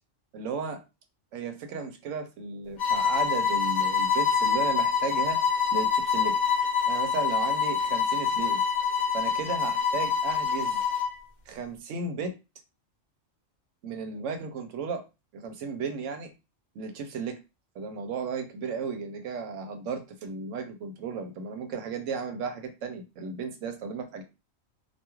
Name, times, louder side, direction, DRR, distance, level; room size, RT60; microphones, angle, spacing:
voice 1, 0.3-0.8 1.3-5.4 5.7-6.4 6.9-8.6 9.1-10.8 11.5-12.4 13.8-15.0 15.3-16.3 16.7-17.4 17.8-24.2, right 5 dB, 75° right, 6 dB, 0.9 m, -34 dB
sound 1, 2.8-11.2, left 6 dB, 45° left, 0.6 m, -26 dB
2.4 x 2.3 x 3.0 m, 0.27 s
omnidirectional pair, 1.3 m